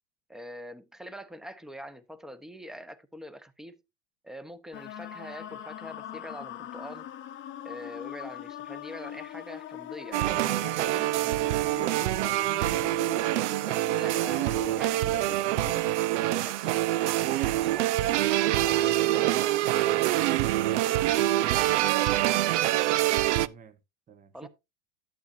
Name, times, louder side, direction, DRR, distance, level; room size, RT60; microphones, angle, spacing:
voice 1, 0.3-3.8 4.2-7.1 7.6-10.3 13.6-16.9 17.3-18.2 18.6-22.0 24.3-24.5, equal, ahead, 0.9 m, -44 dB
sound 1, 4.7-16.0, left 11 dB, 35° left, 0.9 m, -42 dB
sound 2, 10.1-23.5, right 15 dB, 80° right, 0.6 m, -25 dB
voice 2, 10.2-13.0 19.2-19.4 23.4-23.8 24.1-24.5, right 7 dB, 25° right, 1.1 m, -45 dB
11.5 x 8.6 x 2.6 m
supercardioid pair, 115°, 35 cm